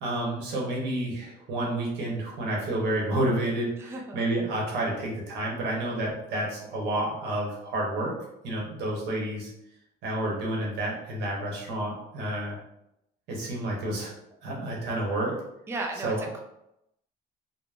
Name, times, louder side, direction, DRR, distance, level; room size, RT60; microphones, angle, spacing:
voice 1, 0.0-8.1 8.4-9.5 10.0-12.6 13.3-14.1 14.4-15.4 16.0-16.2, right 1 dB, 85° right, -2 dB, 0.9 m, -30 dB
voice 2, 3.8-4.2 15.7-16.4, right 3 dB, 15° right, 1 dB, 0.4 m, -35 dB
3.3 x 2.1 x 2.4 m, 0.83 s
cardioid pair, 110°, 17 cm